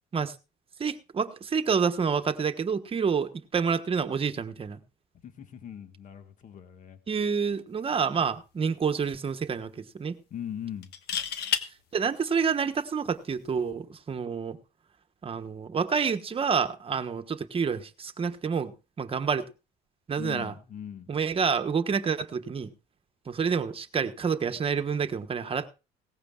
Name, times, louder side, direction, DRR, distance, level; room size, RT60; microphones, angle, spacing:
voice 1, 0.8-4.8 7.1-10.2 11.9-14.6 15.2-18.7 19.0-19.4 20.1-20.5 21.1-22.7 23.3-25.7, right 6 dB, 35° right, 1.3 m, -28 dB
voice 2, 5.2-7.0 10.3-10.9 20.2-21.1, left 9 dB, 50° left, 1.6 m, -40 dB
sound 1, 8.0-8.2 8.6-8.7 10.8-11.7 13.5-13.7, left 9 dB, 75° left, 1.4 m, -30 dB
18.0 x 15.0 x 2.4 m
cardioid pair, 110°, 17 cm